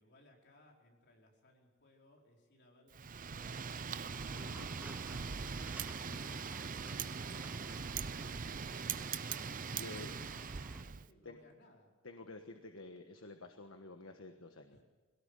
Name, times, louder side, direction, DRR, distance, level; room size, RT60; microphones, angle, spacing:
voice 1, 0.0-11.9 14.7-14.8, left 1 dB, 55° left, -1 dB, 4.7 m, -65 dB
Wind, 2.9-11.1, right 6 dB, 40° right, 0.6 m, -41 dB
sound 1, 4.1-10.8, right 1 dB, 5° right, 0.7 m, -55 dB
voice 2, 4.3-4.7 9.7-10.1 11.2-11.4 12.0-14.8, left 2 dB, 70° left, 5 dB, 1.4 m, -50 dB
22.0 x 17.5 x 8.3 m, 1.3 s
head